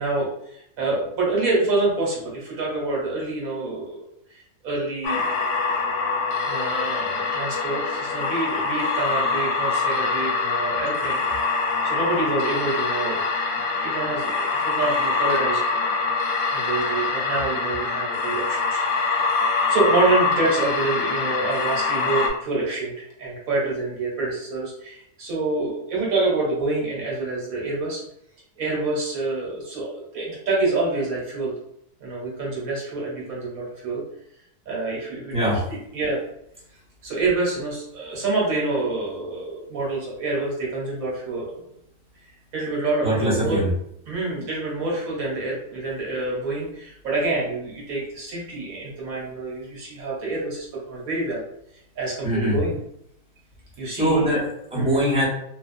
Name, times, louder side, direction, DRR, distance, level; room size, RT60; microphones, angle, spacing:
voice 1, 0.0-4.0 4.3-5.2 6.4-11.4 11.8-13.3 13.6-16.1 16.5-19.0 19.7-28.0 28.6-31.5 32.0-34.0 34.7-36.2 37.0-41.7 42.2-43.6 44.1-51.4 52.0-52.8 53.8-54.3 54.7-55.0, right 2 dB, 60° right, -4 dB, 1.3 m, -27 dB
sound 1, 5.0-22.3, left 4 dB, 80° left, 1.2 m, -24 dB
voice 2, 43.0-43.7 52.2-52.6 53.9-55.3, right 1 dB, 5° right, -8 dB, 0.7 m, -22 dB
3.1 x 2.2 x 2.5 m, 0.77 s
omnidirectional pair, 1.8 m